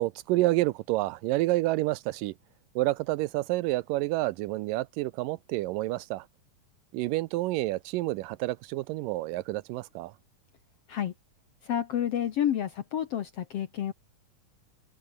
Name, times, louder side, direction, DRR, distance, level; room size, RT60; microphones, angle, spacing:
voice 1, 0.0-2.3 2.8-6.3 6.9-10.1, right 18 dB, 80° right, 2.2 m, -29 dB
voice 2, 11.6-13.9, left 10 dB, 60° left, 1.6 m, -29 dB
omnidirectional pair, 4.1 m